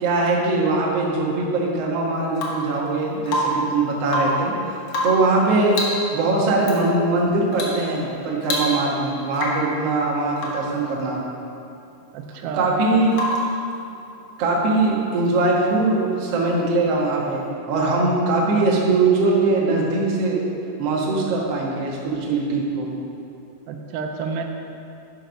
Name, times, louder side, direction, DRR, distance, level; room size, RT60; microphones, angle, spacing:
voice 1, 0.0-4.5 5.0-5.8 6.1-11.2 12.5-13.1 14.4-20.4 20.8-22.9, right 3 dB, 60° right, -3 dB, 1.7 m, -21 dB
Rain / Water tap faucet / Drip, 2.3-2.7 3.3-3.7 4.0-4.5 4.9-5.3 5.7-6.1 6.6-6.8 7.5-7.8 8.1-8.2 8.4-9.0 9.3-9.7 10.4-10.7 13.1-13.6 15.5-15.6, left 1 dB, 65° left, 1.8 m, -26 dB
voice 2, 12.1-12.7 23.7-24.4, right 5 dB, 85° right, 3 dB, 2.8 m, -30 dB
10.5 x 6.8 x 5.3 m, 2.6 s
omnidirectional pair, 4.8 m